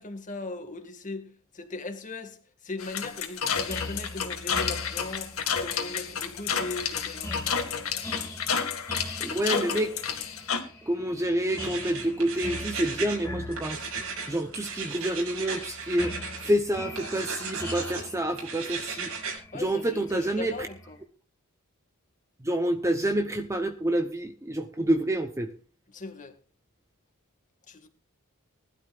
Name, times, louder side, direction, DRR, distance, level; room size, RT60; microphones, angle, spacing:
voice 1, 0.0-7.3 19.5-21.0 25.9-26.4 27.7-27.9, left 2 dB, 35° left, 1.9 m, -39 dB
sound 1, 2.8-10.6, left 7 dB, 75° left, 2.1 m, -30 dB
sound 2, 3.7-21.0, left 2 dB, 15° left, 2.5 m, -42 dB
voice 2, 9.2-9.9 10.9-13.8 14.3-16.2 16.4-19.1 19.5-20.5 22.4-25.5, right 1 dB, 15° right, 0.9 m, -28 dB
sound 3, 11.5-13.2 13.5-16.5 16.9-18.0 18.4-19.4, right 5 dB, 85° right, 6.3 m, -36 dB
20.0 x 12.0 x 2.5 m
head